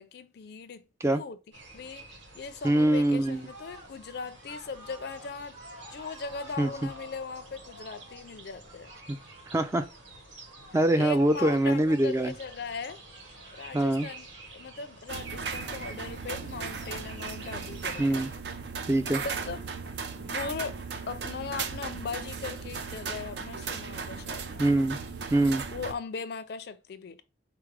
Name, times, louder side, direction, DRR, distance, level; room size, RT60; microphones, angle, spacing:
voice 1, 0.0-1.4 1.7-2.0 2.3-5.6 5.9-8.9 10.9-13.0 13.5-14.3 14.5-18.2 19.2-19.6 20.2-20.8 21.1-24.7 25.7-27.2, left 5 dB, 60° left, 0.4 m, -39 dB
sound 1, 1.5-18.4, right 3 dB, 85° right, 1.3 m, -49 dB
voice 2, 2.6-3.4 6.6-6.7 9.1-9.2 9.5-9.9 10.7-12.3 13.7-14.1 18.0-18.3 18.9-19.2 24.6-25.0 25.3-25.6, right 1 dB, 15° right, 0.3 m, -24 dB
sound 2, 3.2-17.0, right 1 dB, 30° right, 2.1 m, -52 dB
sound 3, 15.1-25.9, right 5 dB, 65° right, 0.5 m, -37 dB
4.7 x 2.0 x 4.7 m
head